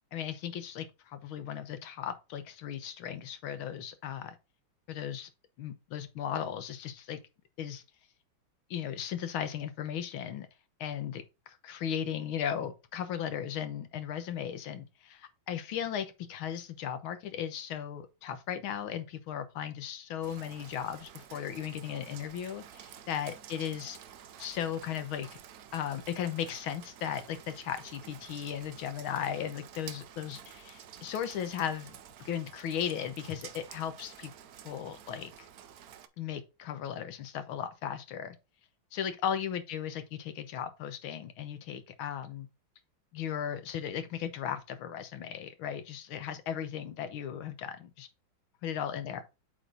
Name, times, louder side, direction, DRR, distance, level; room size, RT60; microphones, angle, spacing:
voice 1, 0.1-4.4 4.9-5.3 5.6-7.2 7.6-7.8 8.7-10.5 10.8-24.0 24.4-25.4 25.7-32.0 32.3-34.3 34.7-35.5 36.2-38.4 38.9-42.5 43.1-48.1 48.6-49.2, left 9 dB, 80° left, 1.8 m, -36 dB
Rain, 20.2-36.1, right 9 dB, 65° right, 0.9 m, -51 dB
8.1 x 3.9 x 3.8 m
omnidirectional pair, 2.3 m